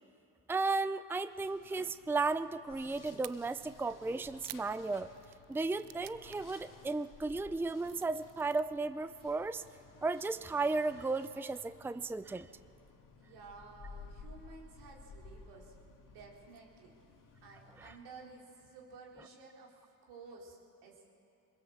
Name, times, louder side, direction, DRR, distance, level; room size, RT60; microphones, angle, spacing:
voice 1, 0.5-5.1 5.5-9.6 10.0-12.5 17.8-17.9, right 3 dB, 5° right, 13 dB, 0.6 m, -34 dB
sound 1, 1.3-18.4, left 4 dB, 50° left, 2.4 m, -56 dB
sound 2, 3.2-3.3 4.1-6.5 6.8-7.1 7.5-8.6, right 16 dB, 60° right, 0.5 m, -50 dB
voice 2, 13.2-15.7 16.0-16.9 17.4-19.7 20.0-21.1, right 4 dB, 85° right, -2 dB, 3.8 m, -53 dB
21.5 x 21.5 x 7.2 m, 2.6 s
supercardioid pair, 65°, 40 cm